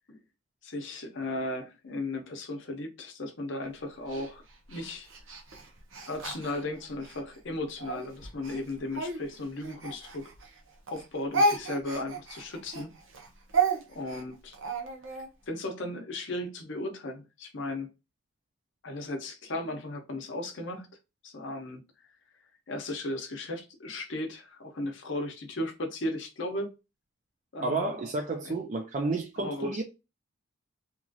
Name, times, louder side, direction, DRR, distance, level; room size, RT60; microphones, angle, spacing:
voice 1, 0.6-4.4 4.7-5.1 6.1-10.3 10.9-12.9 13.9-14.6 15.1-17.9 18.8-20.9 21.2-22.1 22.7-26.7 27.5-28.0 28.4-28.5 29.4-29.8, left 1 dB, 60° left, 0.7 m, -36 dB
Speech, 4.1-7.2 7.8-10.6 10.9-15.3, right 3 dB, 70° right, 0.7 m, -32 dB
voice 2, 27.6-29.8, right 3 dB, 35° right, 0.4 m, -31 dB
2.9 x 2.4 x 2.5 m
head